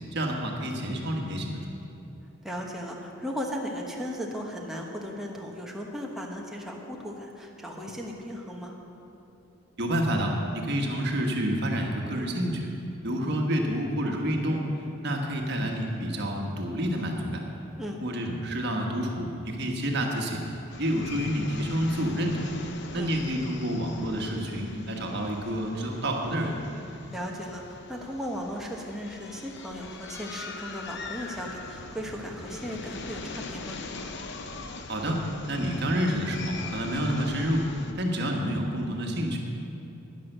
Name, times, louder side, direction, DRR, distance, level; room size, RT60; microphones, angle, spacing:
voice 1, 0.1-1.8 9.8-12.7 13.0-14.7 15.0-17.4 17.9-20.4 20.8-22.5 22.9-26.6 34.9-35.2 35.5-37.7 37.9-39.4, equal, 50° right, 1 dB, 1.5 m, -28 dB
voice 2, 2.4-8.8 17.8-18.0 22.9-23.1 27.1-33.8, equal, ahead, -1 dB, 1.2 m, -36 dB
sound 1, 20.7-37.9, left 3 dB, 50° left, 0.8 m, -41 dB
11.0 x 10.5 x 6.7 m, 2.8 s
head